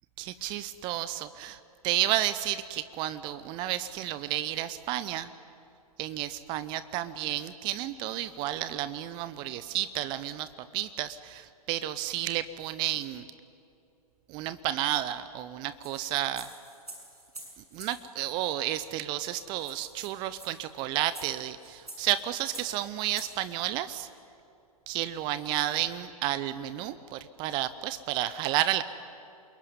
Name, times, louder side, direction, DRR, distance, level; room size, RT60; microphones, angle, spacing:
voice 1, 0.2-1.6 1.8-5.3 6.0-13.2 14.3-16.5 17.7-24.1 24.9-28.8, right 13 dB, 25° right, 14 dB, 0.7 m, -31 dB
sound 1, 15.8-18.0 19.0-19.1 19.3-19.4 19.6-23.3, right 2 dB, 80° right, 7.2 m, -47 dB
28.0 x 22.0 x 9.7 m, 2.7 s
figure-of-eight pair, 120°, 19 cm